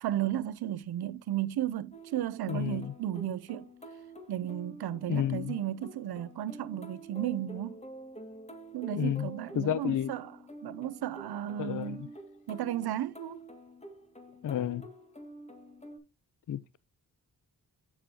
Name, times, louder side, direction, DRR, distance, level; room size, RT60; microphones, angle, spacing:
voice 1, 0.0-3.7 4.3-7.8 8.7-10.3 10.6-12.1 12.5-13.4, right 12 dB, 80° right, 0.7 m, -34 dB
sound 1, 1.9-16.0, right 1 dB, 15° left, 1.9 m, -48 dB
voice 2, 2.5-2.9 5.1-5.6 8.9-9.3 9.5-10.1 11.6-12.1 14.4-14.9 16.5-16.8, left 10 dB, 55° left, 0.6 m, -31 dB
7.2 x 6.9 x 2.8 m
cardioid pair, 50°, 38 cm